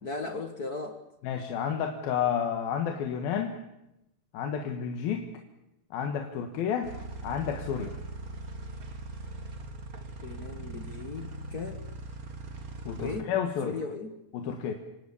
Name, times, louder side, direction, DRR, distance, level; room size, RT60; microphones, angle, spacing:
voice 1, 0.0-1.0 10.2-11.8 13.0-13.3 13.6-14.1, left 3 dB, 65° left, 6 dB, 0.9 m, -36 dB
voice 2, 1.2-3.6 4.3-5.3 5.9-6.9 7.2-8.0 12.9-13.8 14.3-14.7, left 8 dB, 85° left, 4 dB, 3.4 m, -30 dB
sound 1, 6.8-13.2, right 2 dB, 35° right, 1.4 m, -40 dB
27.5 x 18.5 x 8.4 m, 0.89 s
omnidirectional pair, 4.1 m